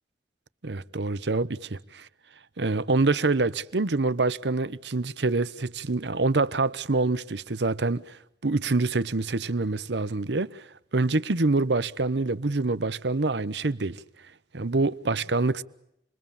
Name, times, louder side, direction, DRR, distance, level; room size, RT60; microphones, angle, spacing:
voice 1, 0.6-2.1 2.6-10.7 10.9-14.0 14.5-15.6, right 3 dB, 85° right, 0.9 m, -26 dB
28.0 x 22.0 x 7.2 m
head